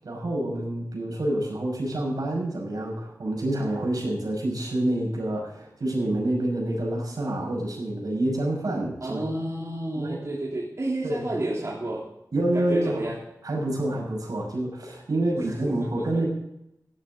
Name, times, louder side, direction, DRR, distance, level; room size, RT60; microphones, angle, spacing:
voice 1, 0.0-9.2 9.9-10.2 11.0-11.3 12.3-13.0 13.4-16.3, right 1 dB, 75° right, -1 dB, 5.8 m, -27 dB
voice 2, 9.0-12.1 12.5-13.2 15.4-16.2, right 1 dB, 50° right, -5 dB, 3.2 m, -31 dB
16.5 x 12.0 x 3.9 m, 0.82 s
wide cardioid pair, 85°, 6 cm